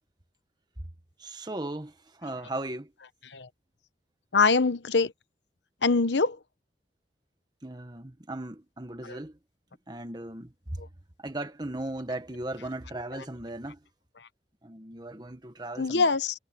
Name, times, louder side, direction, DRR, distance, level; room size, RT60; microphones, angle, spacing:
voice 1, 1.2-1.9 2.2-2.9 7.6-9.3 9.9-10.8 11.2-13.8 14.6-16.1, right 1 dB, 25° right, 1.6 m, -37 dB
voice 2, 4.3-5.1 5.8-6.4 15.8-16.3, left 4 dB, 80° left, 1.0 m, -23 dB
head